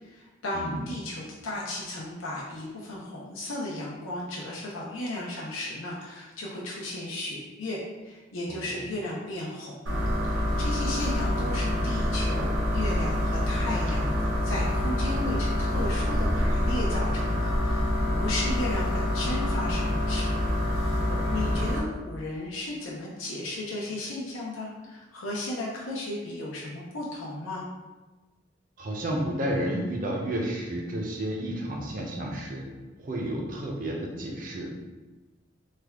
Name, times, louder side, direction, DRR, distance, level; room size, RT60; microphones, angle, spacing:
voice 1, 0.0-10.0 10.2-21.0 21.3-27.6, left 1 dB, 85° left, -4 dB, 0.6 m, -35 dB
voice 2, 8.5-8.8 21.1-21.5 28.8-32.7 33.0-34.7, right 1 dB, 45° right, -1 dB, 0.6 m, -31 dB
sound 1, 9.9-21.8, left 1 dB, 90° right, 1.2 m, -26 dB
3.3 x 2.3 x 3.4 m, 1.2 s
head